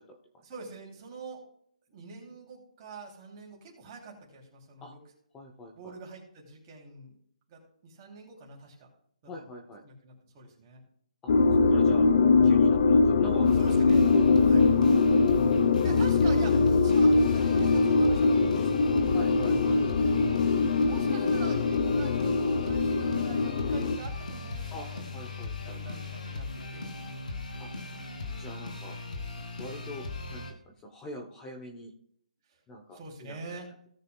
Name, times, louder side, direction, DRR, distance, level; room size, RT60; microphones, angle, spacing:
voice 1, 0.4-1.4 1.9-5.0 5.7-7.1 7.5-8.9 9.4-9.5 9.8-10.8 13.6-14.0 14.5-14.6 15.8-19.1 20.7-25.0 25.6-27.1 27.5-27.6 32.9-33.7, right 3 dB, 20° right, -2 dB, 3.2 m, -45 dB
voice 2, 5.3-5.9 9.3-9.8 11.7-12.1 12.4-13.6 14.1-14.8 19.1-19.8 24.7-24.9 25.1-25.8 27.6-27.7 28.3-29.0 29.6-30.4 30.8-31.9 32.7-33.4, left 1 dB, 10° left, 1 dB, 0.9 m, -42 dB
sound 1, 11.3-24.0, left 4 dB, 45° left, 0.8 m, -22 dB
sound 2, 13.4-30.5, left 3 dB, 80° left, 2.7 m, -39 dB
17.5 x 6.7 x 2.4 m, 0.66 s
hypercardioid pair, 165°, 4 cm